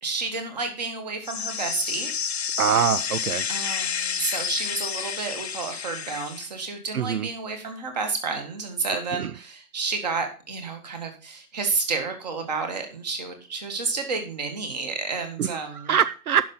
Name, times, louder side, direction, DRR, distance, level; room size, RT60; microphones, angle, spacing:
voice 1, 0.0-2.2 3.5-16.0, right 4 dB, 30° right, 6 dB, 1.8 m, -30 dB
sound 1, 1.2-6.5, left 7 dB, 45° left, 0.7 m, -30 dB
voice 2, 2.6-3.5 6.9-7.3 9.2-9.3 15.4-15.5 15.9-16.5, right 8 dB, 80° right, 16 dB, 0.7 m, -23 dB
10.5 x 6.0 x 5.5 m, 0.36 s
hypercardioid pair, 165°, 44 cm